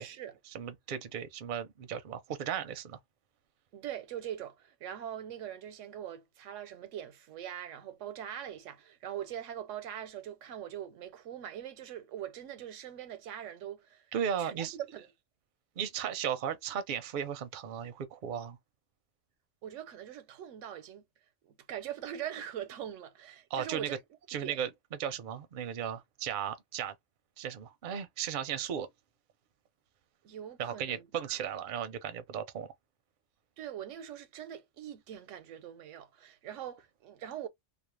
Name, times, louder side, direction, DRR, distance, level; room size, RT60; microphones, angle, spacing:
voice 1, 0.0-0.4 3.7-14.1 14.4-15.0 19.6-21.0 21.4-24.0 24.4-24.6 30.2-31.3 33.6-37.5, right 10 dB, 90° right, 0.9 m, -42 dB
voice 2, 0.5-3.0 14.1-14.7 15.8-18.6 23.5-24.0 24.3-24.7 25.0-26.9 27.4-28.9 30.6-32.7, right 8 dB, 55° right, 0.6 m, -35 dB
2.4 x 2.1 x 3.1 m
omnidirectional pair, 1.2 m